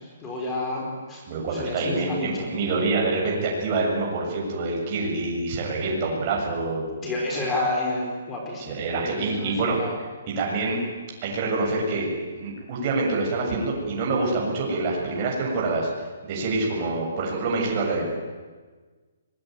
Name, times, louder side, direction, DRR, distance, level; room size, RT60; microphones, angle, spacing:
voice 1, 0.2-1.2 1.5-2.5 7.0-9.9, left 2 dB, 10° left, 0 dB, 4.5 m, -30 dB
voice 2, 1.3-6.9 8.6-9.8 10.3-10.8 11.2-12.1 12.4-15.9 16.2-18.1, right 3 dB, 25° right, -2 dB, 7.5 m, -26 dB
26.0 x 21.5 x 9.5 m, 1.4 s
hypercardioid pair, 170°, 0 cm